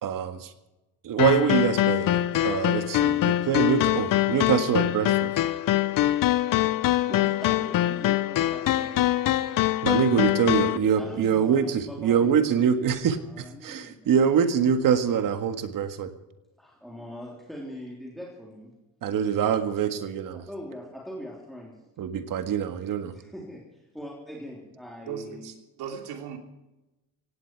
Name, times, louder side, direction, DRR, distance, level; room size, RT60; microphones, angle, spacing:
voice 1, 0.0-0.5 1.0-5.3 9.8-16.1 19.0-20.4 22.0-23.1, right 8 dB, 60° right, 9 dB, 1.8 m, -24 dB
sound 1, 1.2-10.8, left 14 dB, 60° left, 0.8 m, -24 dB
voice 2, 5.4-8.9 11.0-12.7 13.1-14.1 16.6-18.7 20.3-21.7 23.1-25.5, equal, ahead, -3 dB, 3.5 m, -42 dB
voice 3, 25.0-25.5 25.8-26.4, right 8 dB, 85° right, 5 dB, 3.0 m, -37 dB
17.0 x 17.0 x 4.7 m, 1.0 s
cardioid pair, 140°, 38 cm